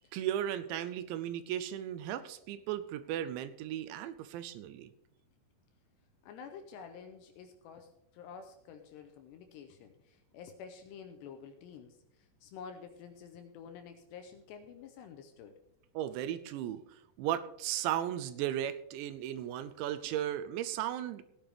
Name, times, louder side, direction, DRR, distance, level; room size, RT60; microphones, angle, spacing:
voice 1, 0.1-4.9 16.0-21.2, right 11 dB, 85° right, 11 dB, 2.8 m, -36 dB
voice 2, 6.2-15.6, left 6 dB, 80° left, 6 dB, 2.7 m, -50 dB
17.0 x 10.0 x 3.4 m, 0.81 s
omnidirectional pair, 5.3 m